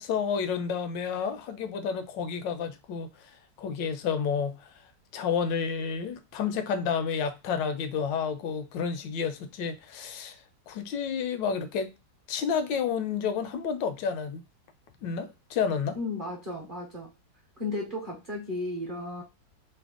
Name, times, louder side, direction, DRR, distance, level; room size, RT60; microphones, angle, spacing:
voice 1, 0.0-4.7 5.1-10.4 10.7-11.9 12.3-14.4 15.0-16.0, left 6 dB, 80° left, 1.3 m, -30 dB
voice 2, 15.9-17.1 17.6-19.2, left 2 dB, 40° right, 0.7 m, -34 dB
3.3 x 2.1 x 3.6 m
omnidirectional pair, 2.0 m